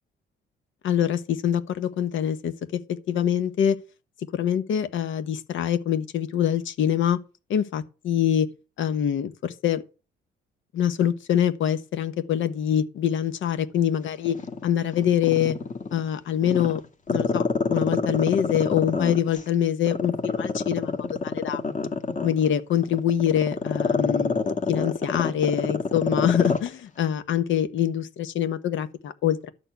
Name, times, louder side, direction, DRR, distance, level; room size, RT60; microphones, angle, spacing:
voice 1, 0.8-3.8 4.3-7.2 7.5-8.5 8.8-9.8 10.7-14.3 14.6-15.6 15.9-16.8 17.1-21.6 22.2-24.4 24.7-29.5, left 9 dB, 75° left, 1.2 m, -25 dB
Growling, 14.3-16.0 16.4-19.4 19.9-26.7 27.0-27.1, left 4 dB, 40° left, 1.8 m, -26 dB
12.0 x 4.3 x 8.2 m
cardioid pair, 90°, 20 cm